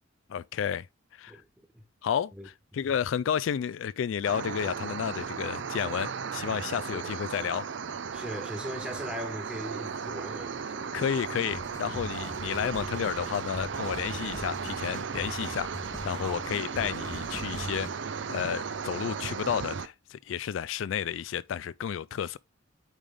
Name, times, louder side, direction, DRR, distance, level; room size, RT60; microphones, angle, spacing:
voice 1, 0.3-0.9 1.1-1.3 2.0-7.7 10.9-15.7 16.0-17.9 18.3-22.4, left 8 dB, 80° left, 0.3 m, -31 dB
sound 1, 4.2-19.9, right 6 dB, 65° right, 0.5 m, -36 dB
voice 2, 8.1-11.0 16.2-16.5, equal, 5° right, 1.3 m, -39 dB
sound 2, 11.5-17.9, equal, 15° left, 0.9 m, -42 dB
9.0 x 3.4 x 3.5 m
head